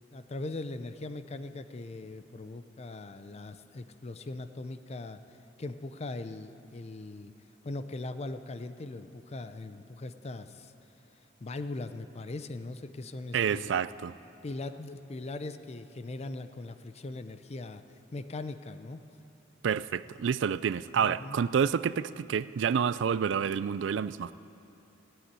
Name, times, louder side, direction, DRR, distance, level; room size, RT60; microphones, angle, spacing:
voice 1, 0.1-5.2 5.6-7.3 7.6-10.7 11.4-13.7 14.4-17.8 18.1-19.0 21.0-21.4, left 2 dB, 35° left, 11 dB, 0.5 m, -40 dB
voice 2, 13.3-14.1 19.6-24.3, right 7 dB, 70° right, 17 dB, 0.4 m, -28 dB
15.5 x 8.9 x 9.6 m, 2.8 s
head